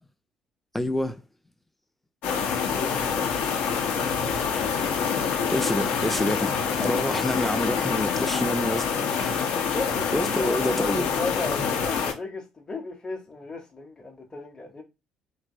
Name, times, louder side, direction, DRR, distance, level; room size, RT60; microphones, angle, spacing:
voice 1, 0.7-1.2 5.5-6.5 6.8-9.6 10.1-11.1, left 1 dB, 5° left, 0.5 m, -28 dB
sound 1, 2.2-12.1, left 6 dB, 60° left, 0.7 m, -26 dB
voice 2, 2.7-3.1 6.4-7.1 9.7-14.8, left 3 dB, 25° left, 0.9 m, -36 dB
3.1 x 2.8 x 2.6 m
figure-of-eight pair, 50°, 3 cm